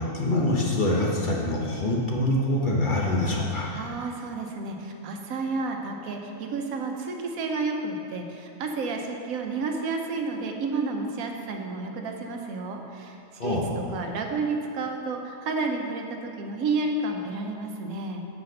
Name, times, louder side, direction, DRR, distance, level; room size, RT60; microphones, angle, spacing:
voice 1, 0.0-3.7 13.4-13.7, left 1 dB, 45° left, -2 dB, 0.8 m, -25 dB
voice 2, 3.7-18.3, right 3 dB, 85° right, 3 dB, 1.2 m, -31 dB
5.6 x 5.0 x 6.4 m, 2.5 s
omnidirectional pair, 1.4 m